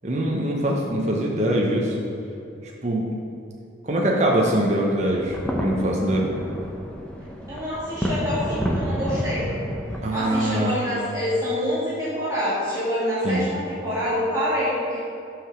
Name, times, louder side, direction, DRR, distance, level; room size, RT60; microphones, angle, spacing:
voice 1, 0.0-2.0 2.6-3.1 3.8-6.3 10.0-10.8 13.2-13.4, right 1 dB, 35° right, -2 dB, 0.7 m, -23 dB
sound 1, 5.0-10.0, equal, 5° left, 0.6 m, -29 dB
voice 2, 7.5-9.5 10.1-15.0, equal, 20° right, -11 dB, 1.6 m, -26 dB
6.1 x 5.0 x 6.1 m, 2.6 s
head